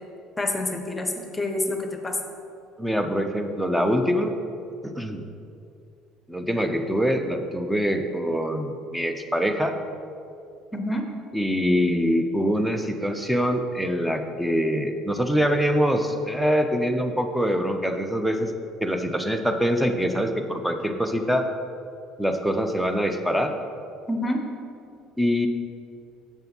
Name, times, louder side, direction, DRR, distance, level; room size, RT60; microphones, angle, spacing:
voice 1, 0.4-2.2 10.7-11.1 24.1-24.4, left 1 dB, 20° left, 4 dB, 1.0 m, -27 dB
voice 2, 2.8-4.4 4.8-5.3 6.3-9.7 11.3-18.5 18.8-21.5 22.2-23.6 25.2-25.5, equal, 5° right, 6 dB, 0.8 m, -24 dB
7.1 x 6.7 x 4.2 m, 2.5 s
hypercardioid pair, 60°, 0 cm